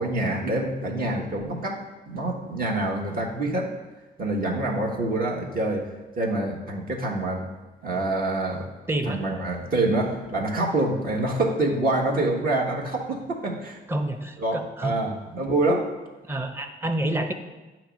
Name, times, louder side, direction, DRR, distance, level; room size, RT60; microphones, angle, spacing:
voice 1, 0.0-3.7 4.2-5.9 6.2-7.4 7.8-8.7 9.0-13.8 14.4-15.9, right 2 dB, 45° right, -2 dB, 1.3 m, -26 dB
voice 2, 8.9-9.2 13.9-15.0 16.3-17.3, right 1 dB, 10° right, 6 dB, 0.7 m, -28 dB
8.6 x 3.1 x 6.3 m, 1.2 s
cardioid pair, 90°, 20 cm